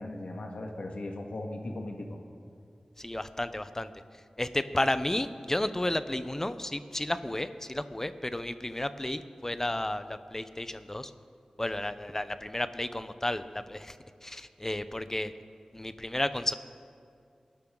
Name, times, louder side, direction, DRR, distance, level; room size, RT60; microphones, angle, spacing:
voice 1, 0.0-2.2, left 2 dB, 75° left, 2 dB, 2.0 m, -38 dB
voice 2, 3.0-3.9 4.4-11.1 11.6-14.0 14.2-15.3 15.7-16.5, left 1 dB, 20° left, 11 dB, 0.8 m, -32 dB
29.5 x 12.0 x 3.9 m, 2.4 s
wide cardioid pair, 70°, 2 cm